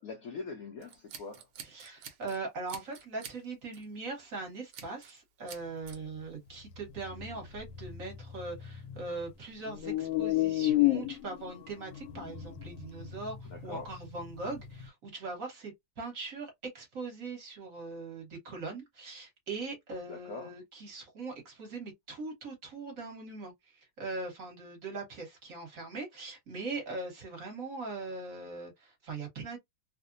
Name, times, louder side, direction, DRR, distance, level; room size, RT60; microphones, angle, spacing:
voice 1, 0.0-1.5 13.5-13.9 20.1-20.6, left 4 dB, 70° left, 0.8 m, -43 dB
Scissors, 0.8-2.4 2.7-3.4 3.7-4.0 4.7-5.2 5.5-6.0, right 8 dB, 70° right, 1.3 m, -47 dB
voice 2, 1.7-29.6, right 3 dB, 50° right, 1.4 m, -41 dB
sound 1, 6.7-9.3 9.6-14.9, left 15 dB, 85° left, 1.3 m, -32 dB
3.2 x 2.1 x 2.5 m
omnidirectional pair, 1.9 m